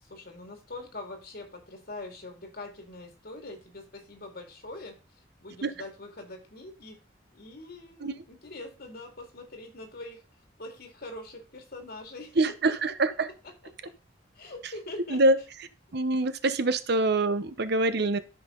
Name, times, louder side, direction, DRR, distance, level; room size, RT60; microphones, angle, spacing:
voice 1, 0.0-7.0 7.3-10.2 10.6-13.0 13.4-13.9 14.3-15.2, left 2 dB, 55° left, 5 dB, 2.3 m, -43 dB
voice 2, 12.4-13.3 15.1-15.4 15.9-18.2, right 2 dB, 60° right, 11 dB, 0.8 m, -25 dB
13.0 x 5.6 x 3.8 m, 0.32 s
head